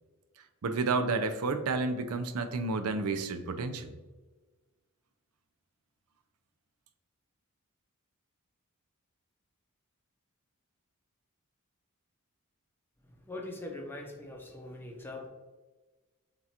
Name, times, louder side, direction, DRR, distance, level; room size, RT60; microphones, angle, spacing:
voice 1, 0.6-3.9, right 3 dB, 85° right, 9 dB, 0.5 m, -31 dB
voice 2, 13.3-15.3, left 2 dB, 10° left, 1 dB, 0.7 m, -42 dB
7.4 x 2.5 x 2.9 m, 1.3 s
head